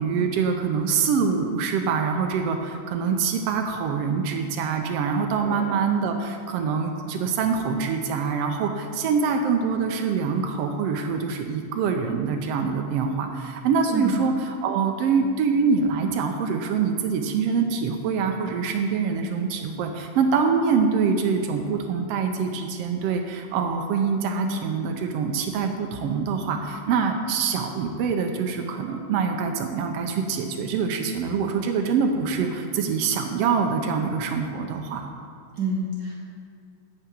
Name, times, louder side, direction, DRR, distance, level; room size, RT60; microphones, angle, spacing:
voice 1, 0.0-35.1, right 5 dB, 90° right, 4 dB, 1.3 m, -25 dB
voice 2, 35.6-36.1, right 2 dB, 70° right, -4 dB, 1.0 m, -27 dB
9.8 x 4.8 x 7.4 m, 2.3 s
omnidirectional pair, 3.6 m